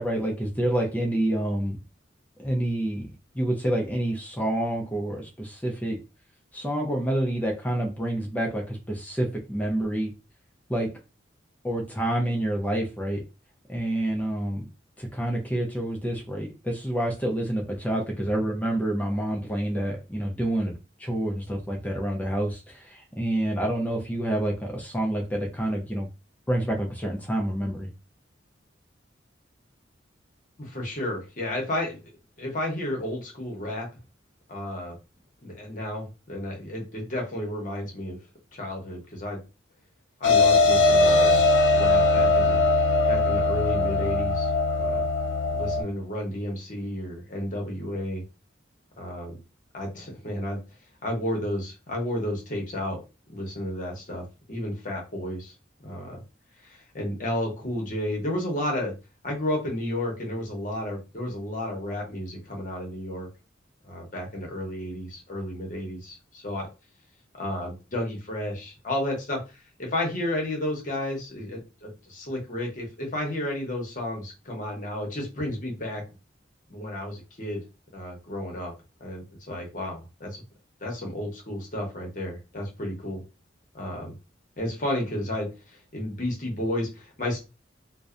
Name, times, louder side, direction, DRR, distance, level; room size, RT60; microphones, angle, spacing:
voice 1, 0.0-1.8 2.4-6.0 6.5-10.1 10.7-10.9 11.6-13.2 13.7-14.7 15.0-20.7 21.0-26.1 26.5-27.9, right 1 dB, 10° left, 0 dB, 0.4 m, -28 dB
voice 2, 30.6-32.1 32.4-33.9 34.5-35.0 35.4-38.2 38.5-39.4 40.2-41.4 41.7-42.7 43.1-45.0 45.5-48.2 49.0-49.4 49.7-50.6 51.0-53.0 53.3-55.5 55.8-56.2 56.6-58.9 59.2-63.3 63.8-66.7 67.3-76.0 76.7-77.6 77.9-78.7 79.0-80.4 80.8-83.2 83.7-84.1 84.6-87.4, left 1 dB, 45° left, 0 dB, 0.8 m, -32 dB
sound 1, 40.2-45.8, left 2 dB, 85° left, 0.5 m, -20 dB
2.6 x 2.0 x 2.4 m, 0.29 s
head